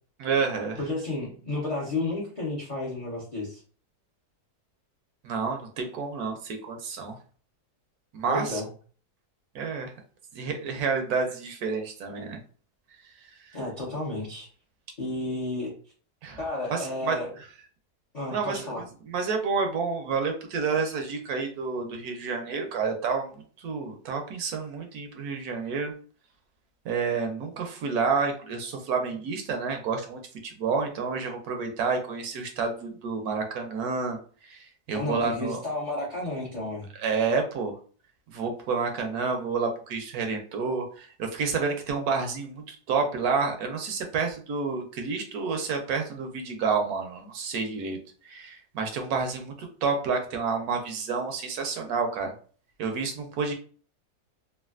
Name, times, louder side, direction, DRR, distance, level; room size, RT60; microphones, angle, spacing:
voice 1, 0.2-0.8 5.2-7.2 8.1-8.6 9.5-9.9 10.3-12.4 16.2-16.4 16.7-17.2 18.3-23.3 23.6-25.9 26.8-34.2 34.4-34.6 34.9-35.6 37.0-37.7 38.3-48.0 48.2-52.3 52.8-53.5, right 5 dB, 70° right, 4 dB, 1.0 m, -29 dB
voice 2, 0.8-3.6 8.3-8.7 13.5-14.5 15.0-15.7 16.4-17.3 18.1-18.8 34.9-36.9, left 2 dB, 45° left, -4 dB, 0.5 m, -32 dB
3.2 x 2.4 x 2.3 m, 0.42 s
omnidirectional pair, 1.7 m